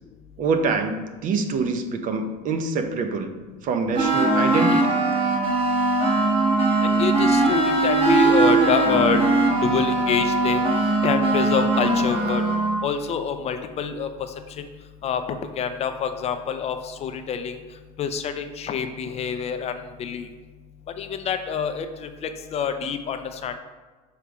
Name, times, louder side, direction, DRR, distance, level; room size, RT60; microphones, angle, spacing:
voice 1, 0.4-3.3 3.6-4.9, right 4 dB, 45° right, 7 dB, 0.7 m, -25 dB
sound 1, 3.9-12.8, right 2 dB, 30° right, 1.4 m, -20 dB
voice 2, 6.8-10.6 11.0-12.4 12.8-14.1 14.6-14.7 15.0-15.2 15.6-17.6 18.0-20.3 21.0-23.6, left 7 dB, 35° left, 8 dB, 0.5 m, -26 dB
5.7 x 3.4 x 4.8 m, 1.3 s
supercardioid pair, 120°, 19 cm